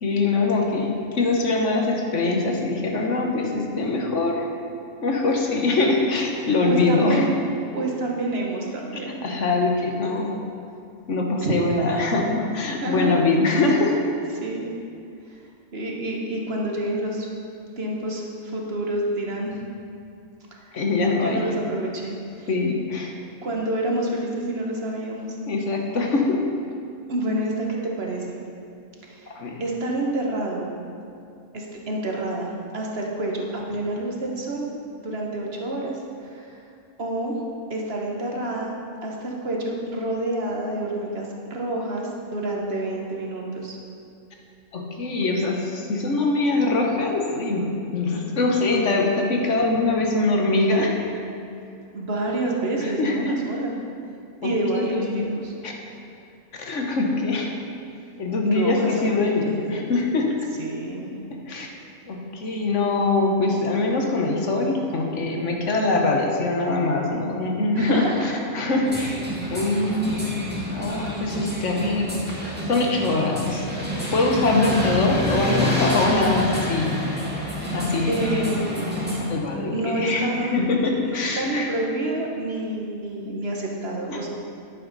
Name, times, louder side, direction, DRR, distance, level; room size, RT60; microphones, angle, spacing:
voice 1, 0.0-4.5 5.0-7.3 8.9-10.3 11.1-14.0 20.7-21.4 22.5-23.1 25.5-26.4 29.3-29.6 44.7-47.7 47.9-51.0 52.8-53.3 54.4-55.3 55.6-55.7 56.5-57.5 58.2-60.3 61.5-61.7 62.1-69.2 69.5-70.2 70.7-72.1 72.7-73.7 74.1-76.9 77.7-78.4 79.3-81.7 84.1-84.2, left 3 dB, 55° left, 1 dB, 1.4 m, -23 dB
voice 2, 6.6-7.3 7.7-9.2 11.4-11.6 12.8-13.2 14.3-14.7 15.3-15.4 15.7-17.3 17.8-19.6 20.5-20.7 21.1-22.5 23.4-25.4 27.1-28.4 29.0-29.3 29.6-30.7 31.5-34.7 35.0-36.6 37.0-37.4 37.7-43.8 51.9-53.8 54.4-55.5 58.4-59.9 60.6-61.1 67.7-68.4 74.5-74.9 77.6-77.8 78.1-79.2 79.7-80.6 81.1-84.3, right 1 dB, 45° right, -1 dB, 1.3 m, -28 dB
sound 1, 68.8-79.2, equal, 5° right, 1.7 m, -28 dB
10.0 x 9.4 x 4.0 m, 2.5 s
omnidirectional pair, 1.5 m